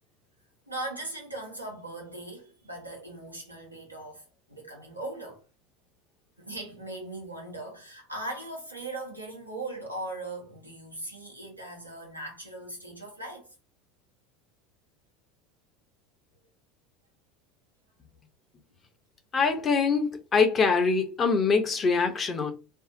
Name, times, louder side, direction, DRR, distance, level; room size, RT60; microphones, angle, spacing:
voice 1, 0.7-5.4 6.4-13.5, right 2 dB, 90° right, 1.0 m, -39 dB
voice 2, 19.3-22.5, left 5 dB, 30° left, 0.8 m, -24 dB
2.6 x 2.3 x 3.8 m
figure-of-eight pair, 70°, 0 cm